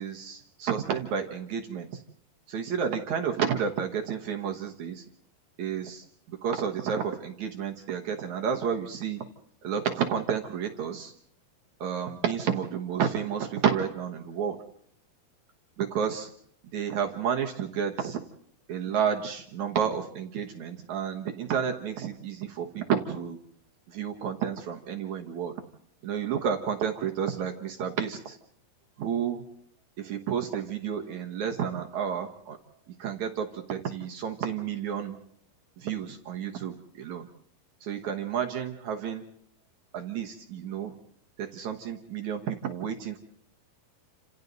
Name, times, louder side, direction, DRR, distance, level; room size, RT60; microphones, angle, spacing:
voice 1, 0.0-2.0 2.5-5.0 5.6-9.2 9.6-11.1 11.8-14.6 15.8-16.3 16.7-18.2 18.7-23.4 23.9-25.6 26.0-28.4 29.0-29.4 30.0-32.6 33.0-35.2 35.8-37.3 37.8-39.2 39.9-40.9 41.4-43.2, right 8 dB, 60° right, 3 dB, 2.1 m, -31 dB
29.0 x 27.5 x 4.0 m, 0.67 s
omnidirectional pair, 4.6 m